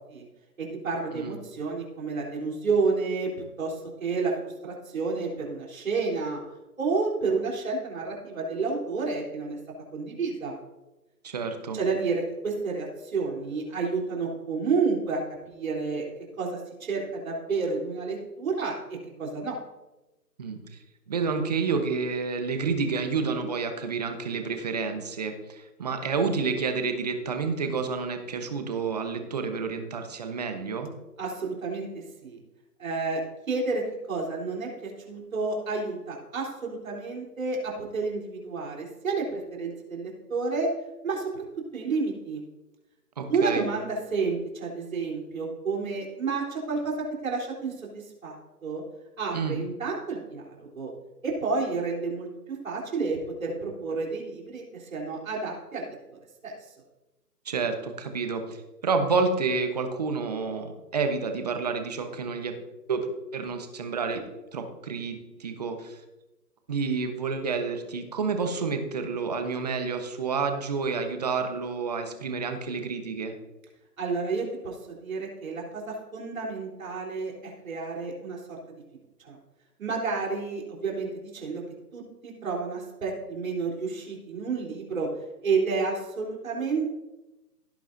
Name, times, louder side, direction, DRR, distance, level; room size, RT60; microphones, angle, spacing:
voice 1, 0.6-3.3 3.6-6.4 6.8-9.6 9.9-10.6 11.7-15.2 15.5-16.0 16.4-18.7 19.2-19.6 31.2-32.4 32.8-33.2 33.5-33.8 34.1-40.7 41.0-41.4 41.7-42.4 43.3-46.9 47.2-48.4 48.6-48.8 49.2-50.9 51.2-56.0 56.4-56.5 74.0-78.6 79.2-79.4 79.8-81.6 81.9-85.1 85.4-86.8, right 4 dB, 55° right, -2 dB, 3.8 m, -30 dB
voice 2, 11.2-11.8 20.4-20.8 21.1-30.9 43.2-43.7 49.3-49.6 57.4-62.5 62.9-63.1 63.3-64.2 64.5-66.0 66.7-73.4, right 4 dB, 25° right, 6 dB, 1.0 m, -29 dB
16.5 x 8.6 x 2.7 m, 1.0 s
hypercardioid pair, 160°, 49 cm